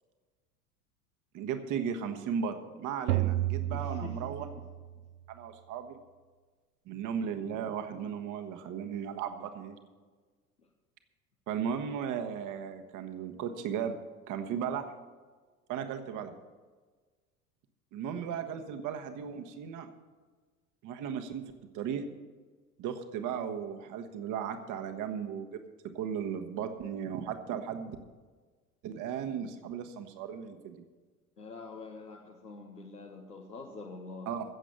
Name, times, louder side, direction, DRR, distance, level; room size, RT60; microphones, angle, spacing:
voice 1, 1.3-4.5 5.3-6.0 6.9-9.8 11.5-14.0 14.3-14.9 15.7-16.3 17.9-19.9 20.8-21.4 21.7-22.0 22.8-25.6 25.9-28.0 28.8-30.9 34.3-34.4, right 7 dB, 40° right, 7 dB, 1.4 m, -36 dB
sound 1, 3.1-5.0, right 14 dB, 70° right, 0.8 m, -31 dB
voice 2, 3.7-4.7 10.6-10.7 31.4-34.3, left 3 dB, 85° left, 0 dB, 1.2 m, -46 dB
16.0 x 7.5 x 6.7 m, 1.4 s
figure-of-eight pair, 75°, 46 cm